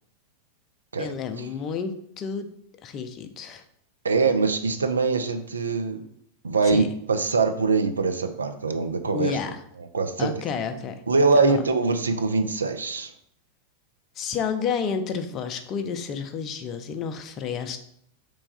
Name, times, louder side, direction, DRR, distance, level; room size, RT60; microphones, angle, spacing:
voice 1, 1.0-2.5 2.8-3.6 6.6-6.9 9.1-9.6 10.2-11.0 11.3-11.6 14.2-17.8, left 6 dB, 30° left, 8 dB, 0.5 m, -30 dB
voice 2, 4.0-6.1 6.4-6.8 7.1-9.3 9.9-10.3 11.1-13.1, right 4 dB, 75° right, 8 dB, 0.4 m, -23 dB
3.4 x 3.1 x 4.0 m, 0.69 s
figure-of-eight pair, 90°, 0 cm